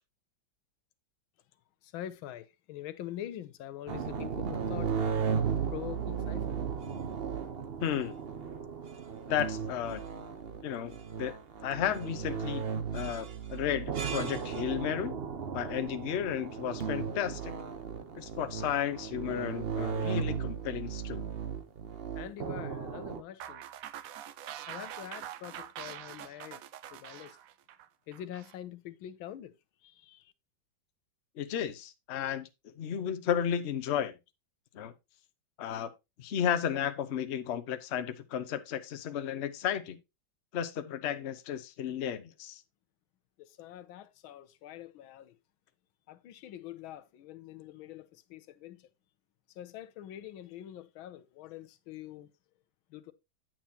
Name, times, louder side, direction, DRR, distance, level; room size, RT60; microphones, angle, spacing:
voice 1, 1.8-4.9 5.7-6.6 22.1-23.6 24.7-26.6 26.9-27.4 28.1-29.5 29.8-30.3 43.4-45.4 46.1-48.9 49.5-52.3 52.9-53.1, left 12 dB, 90° left, 1.5 m, -44 dB
sound 1, 3.9-23.2, right 6 dB, 50° right, 0.7 m, -35 dB
voice 2, 7.8-8.2 9.3-10.0 10.6-11.3 11.6-12.7 12.9-15.2 15.5-17.5 18.1-21.3 31.4-34.1 34.7-34.9 35.6-35.9 36.2-40.0 40.5-42.6, left 9 dB, 55° left, 0.7 m, -33 dB
sound 2, 23.4-28.5, right 11 dB, 85° right, 0.7 m, -44 dB
9.1 x 7.5 x 2.8 m
omnidirectional pair, 2.2 m